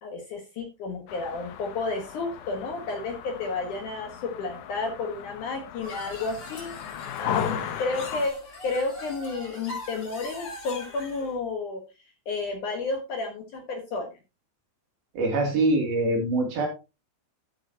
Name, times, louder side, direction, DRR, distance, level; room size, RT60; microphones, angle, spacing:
voice 1, 0.0-6.7 7.2-8.3 8.6-11.8 12.3-14.1, left 3 dB, 60° left, 3 dB, 2.4 m, -31 dB
sound 1, 1.1-8.3, left 8 dB, 80° left, 1.8 m, -36 dB
sound 2, 5.8-11.3, left 2 dB, 40° left, 5.4 m, -41 dB
voice 2, 15.1-16.7, right 2 dB, 60° right, 2 dB, 4.6 m, -24 dB
13.0 x 7.8 x 2.9 m, 0.28 s
omnidirectional pair, 5.0 m